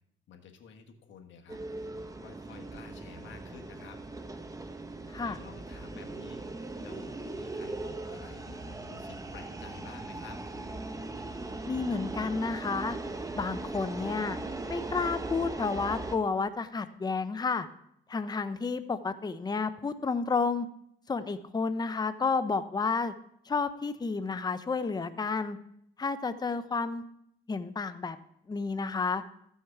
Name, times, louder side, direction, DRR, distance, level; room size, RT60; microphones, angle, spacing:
voice 1, 0.3-1.6 2.2-4.0 5.2-10.4, left 5 dB, 70° left, 4 dB, 1.5 m, -51 dB
sound 1, 1.5-16.2, right 2 dB, 15° right, 1.0 m, -39 dB
voice 2, 11.7-13.0 13.3-14.4 14.7-17.7 18.1-20.7 21.1-23.1 23.5-25.6 26.0-27.0 27.5-28.2 28.5-29.2, left 4 dB, 20° left, 11 dB, 0.6 m, -31 dB
14.0 x 6.4 x 4.7 m, 0.73 s
cardioid pair, 90°, 20 cm